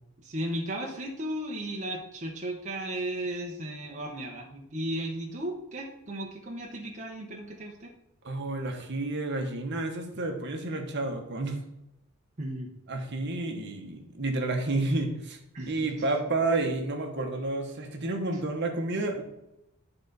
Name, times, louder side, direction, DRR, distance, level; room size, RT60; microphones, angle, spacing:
voice 1, 0.2-7.9 12.4-12.7 15.5-15.8, right 1 dB, 35° right, -1 dB, 0.9 m, -35 dB
voice 2, 8.2-11.6 12.9-15.4 15.7-19.2, right 2 dB, 55° right, 3 dB, 1.1 m, -30 dB
10.5 x 3.9 x 4.0 m, 0.86 s
head